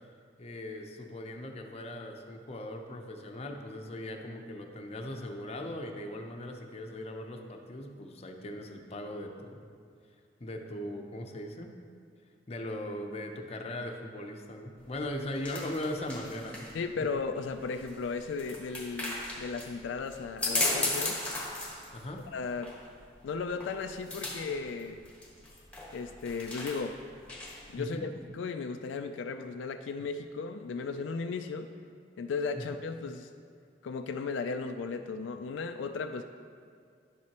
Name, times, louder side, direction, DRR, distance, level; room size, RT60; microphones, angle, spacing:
voice 1, 0.4-9.6 10.4-11.7 12.5-16.7 21.9-22.2 27.8-28.1 32.5-32.6, left 1 dB, 35° left, 3 dB, 0.7 m, -39 dB
sound 1, 14.8-27.8, left 2 dB, 10° left, 1.2 m, -37 dB
voice 2, 16.7-21.2 22.3-22.7 23.2-25.0 25.9-27.0 27.7-31.7 32.2-33.3 33.8-36.2, left 4 dB, 80° left, 7 dB, 0.3 m, -35 dB
10.5 x 7.4 x 2.9 m, 2.3 s
head